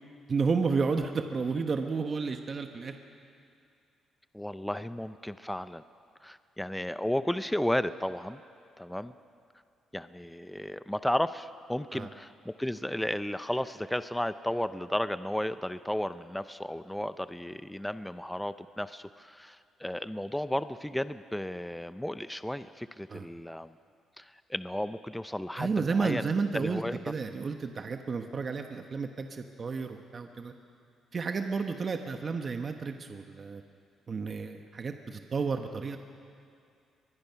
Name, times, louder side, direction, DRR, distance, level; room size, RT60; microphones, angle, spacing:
voice 1, 0.3-2.9 11.9-12.1 23.1-23.3 25.6-30.5 31.1-33.6 34.1-36.0, right 4 dB, 40° right, 5 dB, 1.2 m, -31 dB
voice 2, 4.3-5.8 6.2-8.4 8.8-9.1 9.9-23.7 24.2-26.3 26.5-27.0, left 1 dB, 5° left, 13 dB, 0.6 m, -33 dB
23.5 x 21.5 x 5.8 m, 2.4 s
cardioid pair, 90°, 0 cm